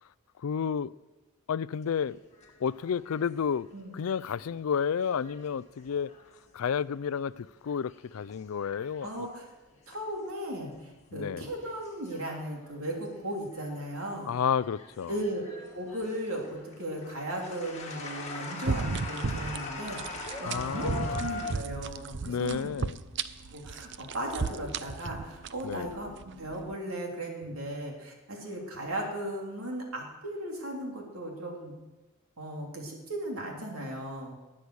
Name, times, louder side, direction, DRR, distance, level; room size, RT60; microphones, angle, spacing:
voice 1, 0.4-0.9 1.5-2.2 2.6-3.7 3.9-6.1 6.5-9.1 11.1-11.5 14.3-15.2 20.4-21.2 22.3-23.0 25.6-25.9, left 7 dB, 80° left, 0.4 m, -31 dB
sound 1, 1.8-7.0 7.4-10.3 10.6-11.0 11.6-14.2 14.6-21.5, left 3 dB, 30° left, 2.3 m, -43 dB
voice 2, 3.7-4.1 9.0-9.5 9.9-14.3 15.1-15.4 15.7-22.7 23.5-31.7 32.4-34.4, right 1 dB, 80° right, 3.5 m, -36 dB
sound 2, 18.6-26.8, right 4 dB, 55° right, 0.6 m, -35 dB
20.0 x 8.6 x 6.4 m
head